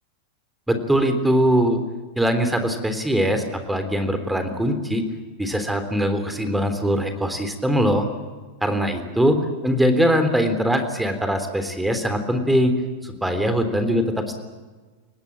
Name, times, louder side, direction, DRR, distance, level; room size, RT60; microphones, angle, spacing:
voice 1, 0.7-1.8 2.2-5.0 5.4-8.1 8.6-9.4 9.6-12.7 13.0-14.4, equal, 5° right, 8 dB, 3.5 m, -21 dB
30.0 x 17.5 x 8.8 m, 1.4 s
figure-of-eight pair, 90°, 0 cm